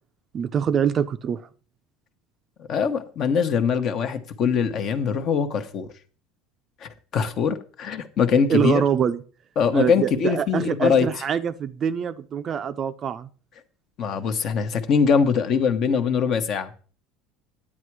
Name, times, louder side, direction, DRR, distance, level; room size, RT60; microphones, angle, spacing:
voice 1, 0.3-1.4 8.5-9.2 9.7-13.3, right 8 dB, 35° right, 0.5 m, -24 dB
voice 2, 2.6-5.9 6.8-8.8 9.6-11.1 14.0-16.7, left 6 dB, 45° left, 1.1 m, -22 dB
9.7 x 8.7 x 4.6 m
supercardioid pair, 130°, 0 cm